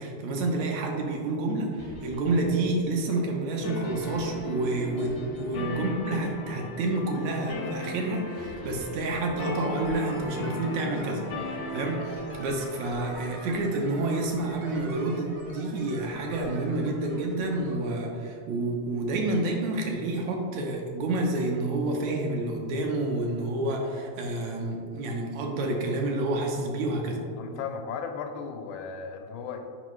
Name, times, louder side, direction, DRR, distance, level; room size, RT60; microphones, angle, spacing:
voice 1, 0.0-27.2, right 2 dB, 75° right, 1 dB, 2.0 m, -29 dB
sound 1, 1.8-7.1 8.4-10.3, left 2 dB, 50° left, 0.7 m, -46 dB
sound 2, 3.6-13.7, left 3 dB, 65° left, 1.1 m, -36 dB
sound 3, 9.8-17.7, right 2 dB, 60° right, 1.4 m, -46 dB
voice 2, 27.4-29.6, left 6 dB, 85° left, 5 dB, 2.0 m, -36 dB
7.8 x 5.2 x 3.1 m, 2.3 s
omnidirectional pair, 3.3 m